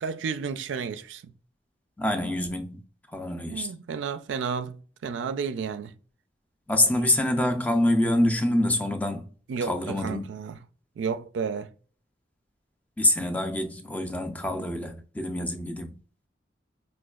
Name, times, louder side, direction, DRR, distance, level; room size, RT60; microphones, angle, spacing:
voice 1, 0.0-1.3 3.4-5.9 7.0-7.1 9.5-10.6 11.0-11.7, right 6 dB, 90° right, 0.3 m, -32 dB
voice 2, 2.0-3.7 6.7-9.3 9.6-10.2 13.0-15.9, left 1 dB, 10° left, 0.4 m, -26 dB
4.9 x 2.2 x 2.3 m
head